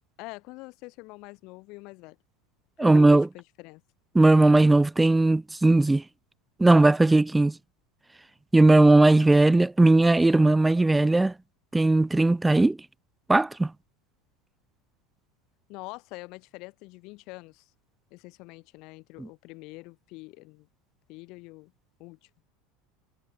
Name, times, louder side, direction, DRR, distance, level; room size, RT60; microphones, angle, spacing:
voice 1, 0.2-2.2 2.8-3.8 15.7-17.7 18.1-20.7 21.1-21.7 22.0-22.3, left 24 dB, 55° left, 5.1 m, -45 dB
voice 2, 2.8-3.3 4.1-6.0 6.6-7.5 8.5-11.3 11.7-12.8 13.3-13.7, right 2 dB, 10° right, 0.6 m, -18 dB
figure-of-eight pair, 75°, 0 cm